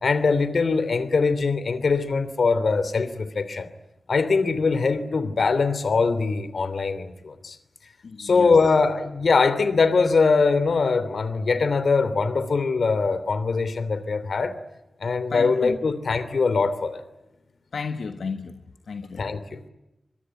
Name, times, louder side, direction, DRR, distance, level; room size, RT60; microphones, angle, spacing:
voice 1, 0.0-3.7 4.1-7.6 8.2-14.6 15.0-17.0 19.2-19.7, left 4 dB, 70° left, 13 dB, 3.0 m, -22 dB
voice 2, 8.0-8.5 15.3-15.8 17.7-18.5 18.9-19.2, left 5 dB, 90° left, 7 dB, 1.4 m, -32 dB
24.5 x 23.0 x 9.6 m, 0.94 s
wide cardioid pair, 100°, 0 cm